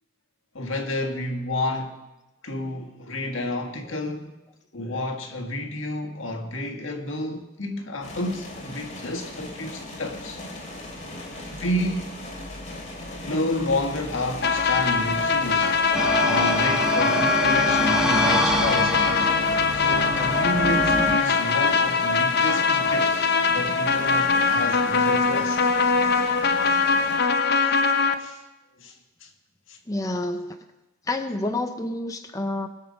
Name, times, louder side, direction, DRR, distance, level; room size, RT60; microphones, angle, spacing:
voice 1, 0.5-2.0 2.4-4.3 4.7-10.4 11.5-12.1 13.2-15.8 16.2-19.0 19.7-25.6 26.6-26.8 27.6-27.8 28.2-28.4 28.8-29.3 29.7-29.8, left 1 dB, 80° left, 1.6 m, -30 dB
sound 1, 8.0-27.2, left 1 dB, 40° left, 2.9 m, -38 dB
sound 2, 14.4-28.1, left 5 dB, 55° left, 0.8 m, -22 dB
sound 3, 15.9-21.2, equal, 5° right, 1.0 m, -26 dB
voice 2, 29.9-30.6 31.1-32.7, left 2 dB, 15° left, 0.6 m, -28 dB
20.5 x 7.0 x 5.2 m
head